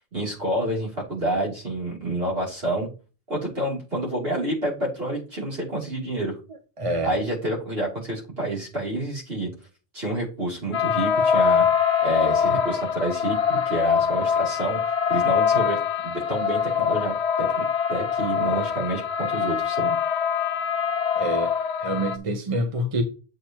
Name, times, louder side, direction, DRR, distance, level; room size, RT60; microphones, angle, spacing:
voice 1, 0.1-2.9 3.3-6.3 7.0-9.5 9.9-11.7 12.0-14.8 15.1-17.6 17.9-19.9, right 1 dB, 55° right, 3.4 m, -28 dB
voice 2, 6.8-7.1 21.2-23.0, right 1 dB, 30° right, 0.9 m, -27 dB
sound 1, 10.7-22.2, left 7 dB, 65° left, 0.9 m, -23 dB
8.3 x 6.7 x 3.0 m
omnidirectional pair, 1.2 m